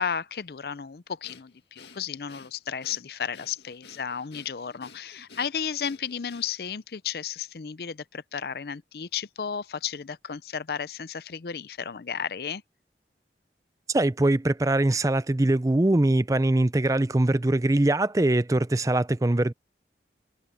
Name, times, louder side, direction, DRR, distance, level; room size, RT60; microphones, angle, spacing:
voice 1, 0.0-12.6, left 7 dB, 60° left, 0.5 m, -33 dB
Breathing, 1.2-6.8, left 5 dB, 75° left, 1.9 m, -52 dB
voice 2, 13.9-19.5, right 1 dB, 20° right, 0.5 m, -22 dB
head